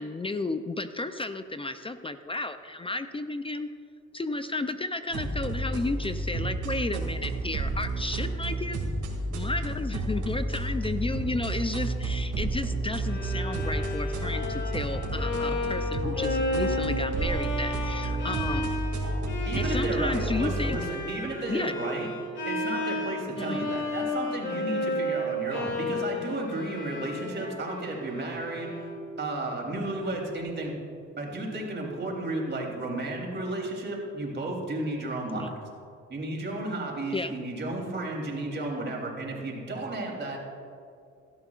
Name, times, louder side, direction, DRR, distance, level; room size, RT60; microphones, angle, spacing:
voice 1, 0.0-3.7 4.1-8.8 9.3-18.7 19.5-20.8 21.5-21.7 23.4-23.7 35.3-35.5 37.1-37.3, left 2 dB, 20° left, 10 dB, 0.5 m, -33 dB
sound 1, 5.1-20.8, right 2 dB, 80° right, 2.4 m, -31 dB
Bowed string instrument, 13.1-29.1, left 1 dB, 40° left, 2.7 m, -33 dB
voice 2, 19.4-22.1 22.4-28.7 29.2-30.7 31.2-35.5 36.1-40.4, right 2 dB, 35° right, -2 dB, 3.4 m, -33 dB
17.5 x 12.5 x 2.5 m, 2.4 s
cardioid pair, 90°, 30 cm